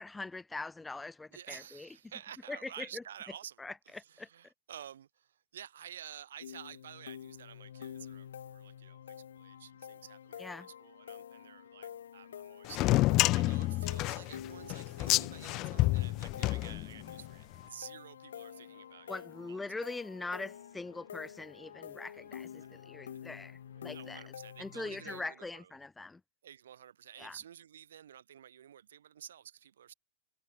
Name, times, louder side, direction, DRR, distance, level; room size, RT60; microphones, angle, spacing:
voice 1, 0.0-1.9 2.5-3.0 3.6-4.3 10.4-10.7 19.1-24.3 24.6-26.2 27.2-27.4, left 3 dB, 10° left, 0.7 m, -42 dB
voice 2, 1.3-12.9 13.3-19.2 19.5-19.8 23.9-25.7 26.4-29.9, right 9 dB, 85° right, 4.3 m, -51 dB
sound 1, 6.4-25.2, left 9 dB, 85° left, 1.2 m, -48 dB
sound 2, 12.7-17.3, left 19 dB, 40° left, 0.3 m, -29 dB
sound 3, 15.2-24.0, right 23 dB, 55° right, 7.8 m, -72 dB
hypercardioid pair, 125°, 0 cm